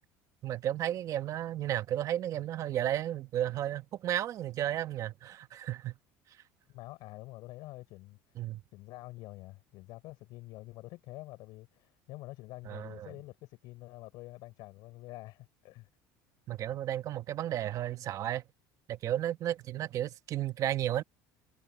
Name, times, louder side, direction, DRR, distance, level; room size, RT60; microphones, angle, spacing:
voice 1, 0.4-5.9 8.4-8.6 12.7-13.1 16.5-18.4 18.9-21.0, right 12 dB, 45° right, 1.1 m, -33 dB
voice 2, 6.7-8.4 8.7-15.9, left 19 dB, 65° left, 5.0 m, -47 dB
cardioid pair, 130°, 8 cm